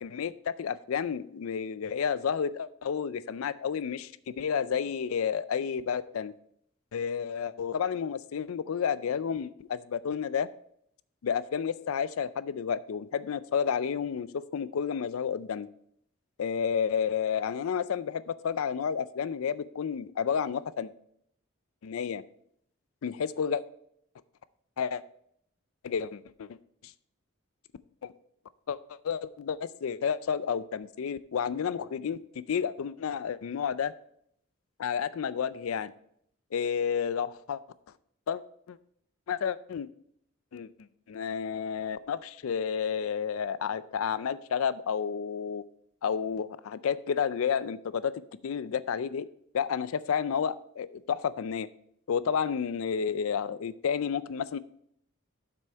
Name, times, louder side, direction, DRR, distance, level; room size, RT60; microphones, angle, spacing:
voice 1, 0.0-6.3 6.9-10.5 11.2-15.7 16.4-20.9 21.8-22.2 23.0-23.6 24.8-25.0 25.8-26.6 28.0-28.1 28.7-28.8 29.0-32.2 32.5-33.9 34.8-35.9 36.5-37.6 38.3-38.4 38.7-38.8 39.3-39.9 40.5-40.7 41.1-45.6 46.0-48.1 48.4-49.3 49.5-51.7 52.1-54.6, left 7 dB, 85° left, 16 dB, 0.4 m, -31 dB
7.6 x 6.2 x 4.6 m, 0.68 s
head